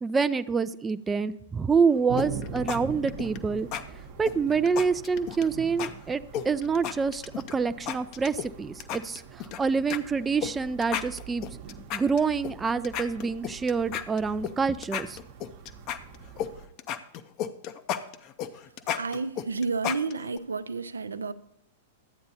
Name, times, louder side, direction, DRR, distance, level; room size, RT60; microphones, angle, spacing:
voice 1, 0.0-3.7 4.2-7.2 7.5-11.4 11.9-15.2, right 5 dB, 15° right, 0.3 m, -27 dB
sound 1, 2.1-16.7, right 6 dB, 55° right, 0.9 m, -43 dB
sound 2, 2.2-2.8 3.1-3.4 3.7-3.8 4.3-5.5 5.8-5.9 6.3-7.5 7.9-8.5 8.8-9.6 9.9-10.0 10.4-10.5 10.8-12.5 12.8-14.5 14.8-16.5 16.8-20.4, left 9 dB, 40° left, 0.6 m, -33 dB
voice 2, 18.9-21.3, right 4 dB, 85° right, 0.5 m, -31 dB
12.0 x 8.5 x 2.7 m
figure-of-eight pair, 105°, 0 cm